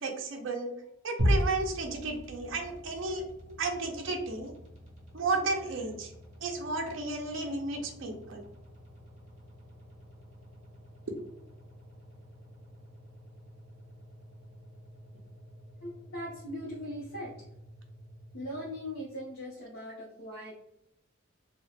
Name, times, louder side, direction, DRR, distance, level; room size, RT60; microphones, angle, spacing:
voice 1, 0.0-0.7 1.0-3.2 3.6-4.5 5.1-6.1 6.4-8.4, right 3 dB, 60° right, 3 dB, 0.5 m, -33 dB
sound 1, 1.2-19.4, equal, 35° right, 1.0 m, -40 dB
voice 2, 15.8-17.3 18.3-20.5, equal, 80° left, -5 dB, 0.6 m, -40 dB
2.8 x 2.1 x 2.3 m, 0.77 s
head